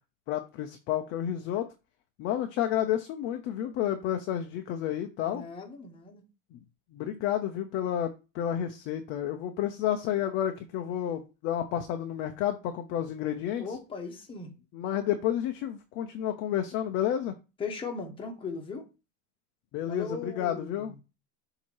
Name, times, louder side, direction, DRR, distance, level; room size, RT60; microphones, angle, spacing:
voice 1, 0.3-1.7 2.2-5.4 6.5-6.6 6.9-13.6 14.7-17.3 19.7-21.0, left 10 dB, 30° left, 0.5 m, -30 dB
voice 2, 5.3-6.2 13.6-14.5 17.6-18.8 19.9-21.0, left 4 dB, 15° left, 1.1 m, -38 dB
7.2 x 2.9 x 4.6 m
supercardioid pair, 145°, 40 cm